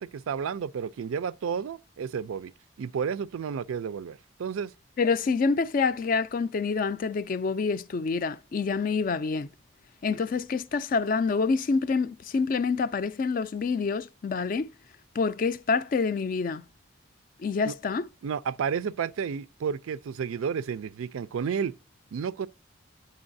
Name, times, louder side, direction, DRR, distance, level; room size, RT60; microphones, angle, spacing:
voice 1, 0.0-2.5 2.8-4.7 17.6-17.7 18.2-21.7 22.1-22.5, right 6 dB, 85° right, 0.4 m, -31 dB
voice 2, 5.0-9.5 10.0-14.7 15.2-16.6 17.4-18.0, left 4 dB, 40° left, 0.3 m, -27 dB
9.7 x 3.9 x 2.5 m
head